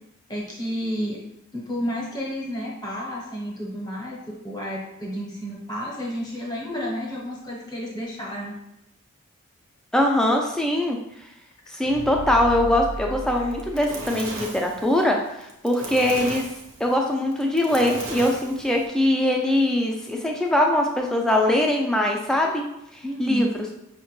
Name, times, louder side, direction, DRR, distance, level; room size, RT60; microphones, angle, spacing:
voice 1, 0.3-1.2 1.5-8.5 23.0-23.6, equal, 20° left, -2 dB, 0.7 m, -31 dB
voice 2, 9.9-11.0 11.7-16.5 16.8-22.6 22.9-23.5, left 1 dB, 5° left, 0 dB, 0.4 m, -22 dB
sound 1, 11.6-14.5 14.8-14.9, right 1 dB, 85° left, 0.6 m, -35 dB
Fire, 13.4-18.9, right 2 dB, 60° right, 0.7 m, -36 dB
5.6 x 2.1 x 3.0 m, 0.83 s
head